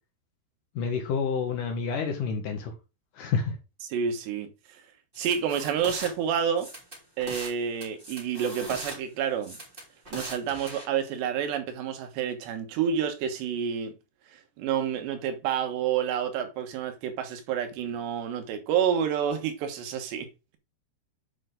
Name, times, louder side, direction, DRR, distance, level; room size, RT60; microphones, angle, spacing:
voice 1, 0.8-2.7 3.2-3.5, left 5 dB, 65° left, 2.5 m, -29 dB
voice 2, 3.9-4.8 5.2-6.7 7.2-9.6 10.1-13.9 14.3-20.3, right 8 dB, 85° right, 3.5 m, -29 dB
sound 1, 5.1-6.1 6.6-7.5 7.8-9.0 9.4-10.8, equal, 15° right, 3.0 m, -40 dB
9.0 x 5.5 x 3.8 m
omnidirectional pair, 4.8 m